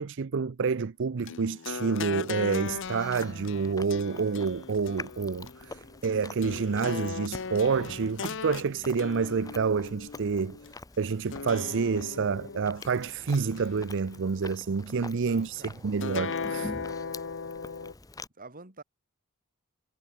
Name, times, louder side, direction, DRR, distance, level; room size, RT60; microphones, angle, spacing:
voice 1, 0.0-10.6 11.0-16.7, right 5 dB, 60° right, 0.5 m, -28 dB
sound 1, 1.3-10.7 11.3-12.9 13.3-14.5 16.0-17.9, left 5 dB, 60° left, 0.8 m, -38 dB
Chewing mastication, 2.6-18.3, left 2 dB, 15° left, 0.9 m, -46 dB
voice 2, 15.0-15.9 18.4-18.8, right 3 dB, 40° right, 4.1 m, -47 dB
head